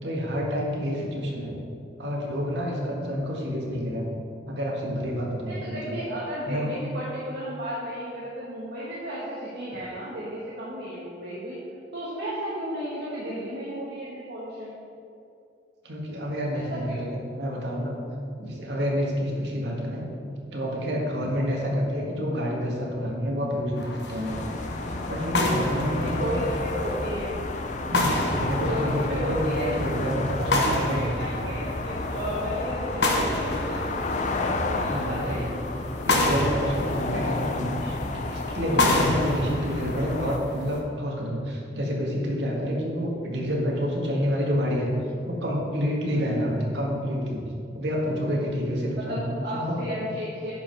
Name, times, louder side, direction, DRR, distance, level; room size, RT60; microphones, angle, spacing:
voice 1, 0.0-1.6 2.0-4.0 4.5-5.9 6.5-6.7 15.8-18.0 18.4-20.0 20.5-24.4 25.1-26.4 27.9-31.1 34.9-35.4 36.0-44.9 45.3-47.4 47.7-49.9, equal, 85° right, -2 dB, 1.8 m, -28 dB
voice 2, 5.4-11.6 11.9-14.7 16.5-17.1 26.0-27.3 28.7-29.7 30.4-35.6 46.0-46.3 49.0-50.5, equal, 70° right, -7 dB, 1.4 m, -34 dB
sound 1, 23.8-40.8, left 1 dB, 75° left, 1.1 m, -30 dB
sound 2, 24.2-40.4, left 3 dB, 45° left, 0.5 m, -32 dB
10.5 x 4.9 x 4.7 m, 2.5 s
head